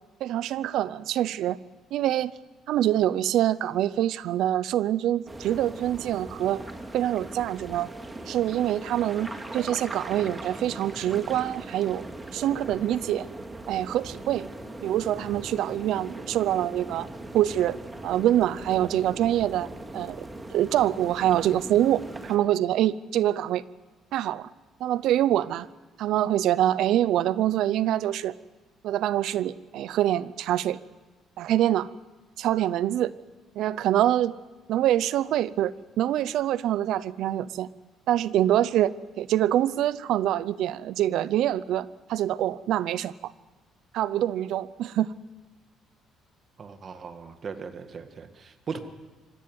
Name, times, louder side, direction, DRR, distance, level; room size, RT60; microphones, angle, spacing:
voice 1, 0.2-1.6 1.9-2.3 2.7-6.6 6.9-7.9 8.3-12.0 12.3-13.3 13.7-14.5 14.8-17.1 17.3-17.8 18.0-19.7 19.9-20.2 20.5-22.0 22.3-23.6 24.1-24.5 24.8-25.7 26.0-28.3 28.8-30.8 31.4-31.9 32.4-33.1 33.6-34.3 34.7-37.7 38.1-43.3 43.9-45.1, right 12 dB, 75° right, 18 dB, 0.6 m, -25 dB
sound 1, 5.3-22.4, right 2 dB, 15° right, 2.2 m, -40 dB
voice 2, 46.6-48.8, right 5 dB, 40° right, 8 dB, 1.9 m, -38 dB
25.5 x 15.0 x 9.5 m, 1.2 s
cardioid pair, 125°, 0 cm